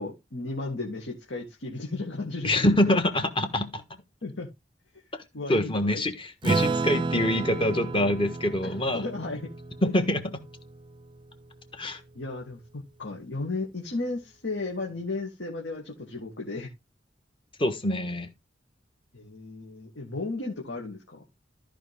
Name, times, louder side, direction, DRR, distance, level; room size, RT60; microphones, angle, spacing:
voice 1, 0.0-3.0 4.2-4.5 5.3-6.0 8.6-9.5 12.1-16.7 19.1-21.2, left 3 dB, 80° left, 2.1 m, -34 dB
voice 2, 2.4-3.8 5.1-5.2 5.5-9.1 9.8-10.5 11.8-12.0 17.6-18.3, left 1 dB, 30° left, 1.4 m, -25 dB
Acoustic guitar / Strum, 6.4-11.3, right 3 dB, 25° right, 0.4 m, -31 dB
13.5 x 5.0 x 3.5 m
head